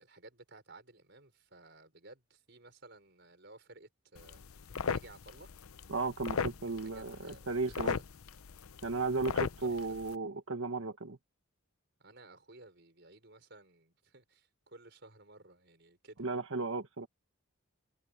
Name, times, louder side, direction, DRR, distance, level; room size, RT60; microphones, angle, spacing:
voice 1, 0.0-4.4 4.9-5.5 6.7-8.0 9.6-10.0 12.0-16.2, right 2 dB, 55° right, 5.2 m, -56 dB
sound 1, 4.2-10.2, left 5 dB, 85° left, 0.7 m, -38 dB
voice 2, 5.9-8.0 8.8-11.2 16.2-17.1, right 3 dB, 75° right, 1.4 m, -35 dB
head